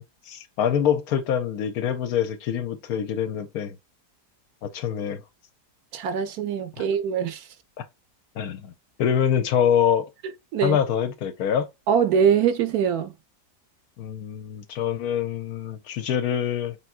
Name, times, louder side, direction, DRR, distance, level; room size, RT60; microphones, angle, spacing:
voice 1, 0.0-3.8 4.6-5.2 6.8-6.9 8.4-8.7 9.0-10.1 10.6-11.7 14.0-16.8, left 8 dB, 70° left, 1.0 m, -25 dB
voice 2, 5.9-7.4 10.5-10.8 11.9-13.1, right 7 dB, 70° right, 1.1 m, -23 dB
4.5 x 3.6 x 2.3 m
omnidirectional pair, 1.8 m